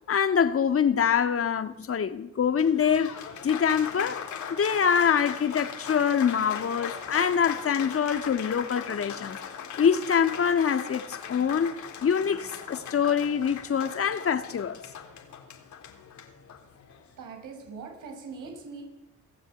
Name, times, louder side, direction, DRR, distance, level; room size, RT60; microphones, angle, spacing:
voice 1, 0.1-3.2 3.4-4.2 4.5-9.4 9.8-11.7 12.0-14.8, left 7 dB, 50° left, 1.9 m, -25 dB
Applause, 2.4-17.1, left 8 dB, 70° left, 3.8 m, -39 dB
voice 2, 17.1-18.8, right 4 dB, 80° right, 6.6 m, -41 dB
27.0 x 16.0 x 9.2 m
cardioid pair, 90°, 30 cm